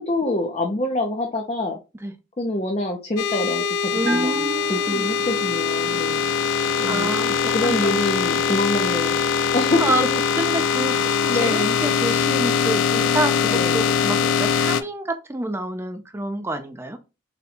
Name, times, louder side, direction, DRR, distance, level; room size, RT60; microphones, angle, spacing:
voice 1, 0.0-1.8 2.4-4.4 4.7-6.2 6.8-7.1 7.5-9.2 9.5-9.8 11.2-11.8 13.4-13.8, left 2 dB, 30° left, 0.6 m, -25 dB
sound 1, 3.2-14.8, left 6 dB, 85° left, 0.4 m, -22 dB
voice 2, 3.9-5.1 6.6-8.0 9.8-11.0 11.3-17.0, right 1 dB, 15° right, 0.5 m, -28 dB
Bell, 4.0-5.7, right 4 dB, 65° right, 0.7 m, -33 dB
4.2 x 2.3 x 4.0 m
head